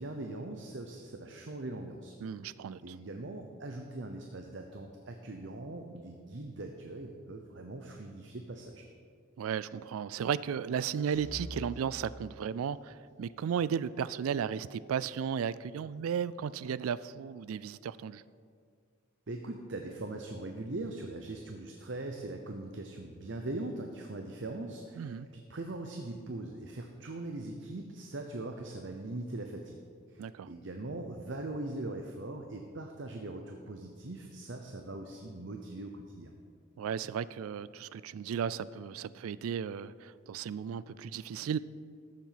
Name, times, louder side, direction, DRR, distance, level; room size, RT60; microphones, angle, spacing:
voice 1, 0.0-2.1 2.8-8.8 19.3-29.8 30.1-36.3, right 2 dB, 60° right, 4 dB, 0.8 m, -41 dB
voice 2, 2.2-3.0 9.4-18.2 25.0-25.3 30.2-30.5 36.8-41.6, right 7 dB, 90° right, 17 dB, 0.3 m, -35 dB
sound 1, 11.0-12.9, equal, 35° right, 3.5 m, -46 dB
13.5 x 7.4 x 5.7 m, 2.2 s
head